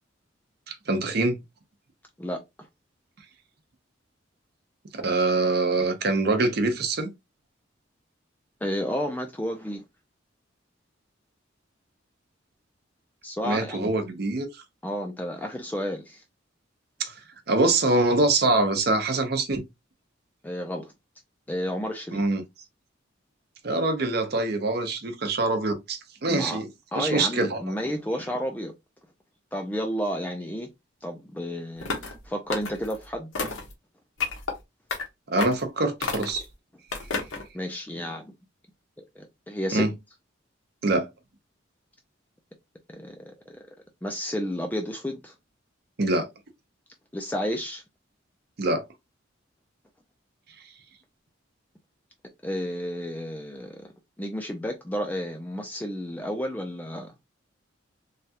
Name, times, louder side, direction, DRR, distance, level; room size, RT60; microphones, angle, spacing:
voice 1, 0.7-1.4 4.9-7.1 13.4-14.5 17.0-17.1 17.5-19.6 22.1-22.4 23.6-26.7 26.9-27.8 35.3-36.4 39.7-39.9 40.8-41.1 46.0-46.3 48.6-48.8, right 2 dB, 55° right, 0.7 m, -24 dB
voice 2, 8.6-9.8 13.2-13.9 14.8-16.2 20.4-20.9 21.5-22.2 26.3-26.6 26.9-28.7 29.5-30.7 31.0-33.5 37.5-38.2 39.2-39.9 42.9-43.6 44.0-45.3 47.1-47.8 52.4-53.9 54.2-57.1, equal, 10° left, 0.3 m, -31 dB
sound 1, 31.8-32.2 32.5-33.0 33.3-33.7 34.2-34.5 34.9-35.0 35.4-35.6 36.0-36.4 36.9-37.4, left 4 dB, 90° left, 0.9 m, -30 dB
3.2 x 2.3 x 2.7 m
head